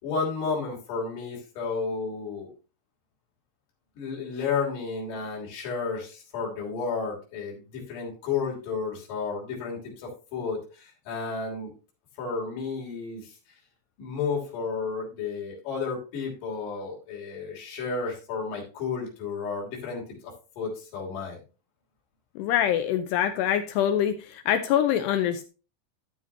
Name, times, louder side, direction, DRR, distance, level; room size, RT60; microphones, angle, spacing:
voice 1, 0.0-2.5 4.0-11.7 12.2-13.3 14.0-20.0 20.6-21.4, left 5 dB, 45° left, -2 dB, 4.4 m, -32 dB
voice 2, 22.4-25.5, left 10 dB, 85° left, 8 dB, 2.4 m, -24 dB
12.5 x 7.2 x 2.8 m, 0.33 s
omnidirectional pair, 5.5 m